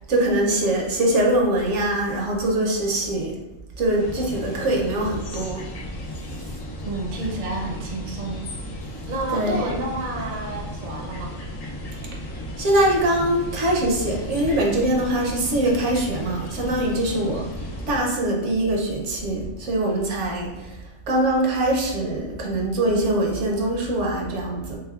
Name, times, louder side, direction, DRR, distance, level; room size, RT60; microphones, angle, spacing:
voice 1, 0.1-3.4 3.8-5.6 6.5-6.6 9.3-9.6 12.6-20.8 21.1-24.8, right 1 dB, 70° right, -1 dB, 0.9 m, -23 dB
sound 1, 4.0-18.0, equal, 85° left, 1.0 m, -35 dB
voice 2, 6.8-8.5 9.1-11.4, right 2 dB, 50° right, -1 dB, 0.6 m, -30 dB
3.4 x 3.3 x 2.3 m, 1.0 s
omnidirectional pair, 1.4 m